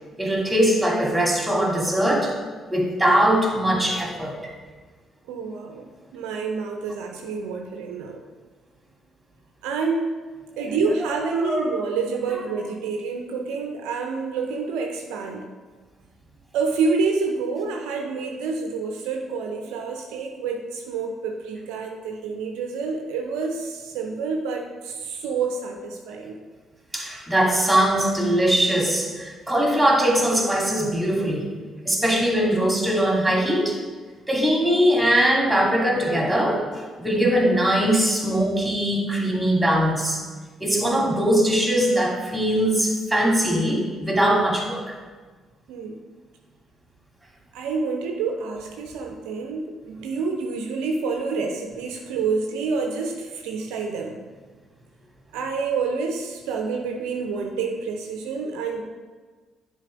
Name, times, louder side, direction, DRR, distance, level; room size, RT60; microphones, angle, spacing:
voice 1, 0.2-2.3 2.7-4.5 11.1-11.7 26.9-31.5 31.8-33.8 34.3-40.2 40.6-44.9, right 1 dB, 5° right, -1 dB, 2.4 m, -21 dB
voice 2, 5.3-8.2 9.6-10.1 10.6-15.5 16.5-26.4 45.7-46.0 47.5-54.2 55.3-58.8, right 4 dB, 65° right, 3 dB, 0.5 m, -28 dB
10.5 x 4.0 x 5.1 m, 1.4 s
figure-of-eight pair, 40°, 0 cm